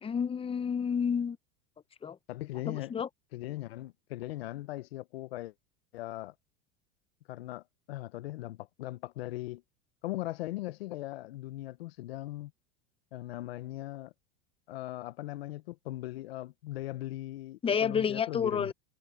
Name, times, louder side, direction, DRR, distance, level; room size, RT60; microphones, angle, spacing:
voice 1, 0.0-1.4 2.0-2.2 2.7-3.1 17.6-18.7, left 7 dB, 20° left, 0.8 m, -30 dB
voice 2, 2.3-2.9 3.3-5.5 5.9-6.3 7.3-9.6 10.0-12.5 13.1-14.1 14.7-18.7, left 16 dB, 85° left, 0.8 m, -39 dB
supercardioid pair, 105°, 30 cm